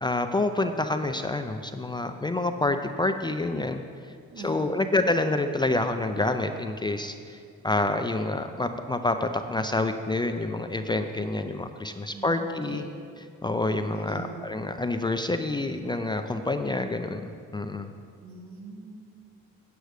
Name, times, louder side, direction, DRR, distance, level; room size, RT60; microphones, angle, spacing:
voice 1, 0.0-3.8 4.4-7.4 7.6-12.8 13.2-17.9, left 2 dB, 15° left, 7 dB, 0.4 m, -28 dB
voice 2, 4.3-4.8 12.1-12.9 13.9-14.3 18.2-19.0, right 4 dB, 75° right, 0 dB, 1.7 m, -42 dB
8.0 x 7.8 x 4.9 m, 2.3 s
cardioid pair, 90°, 30 cm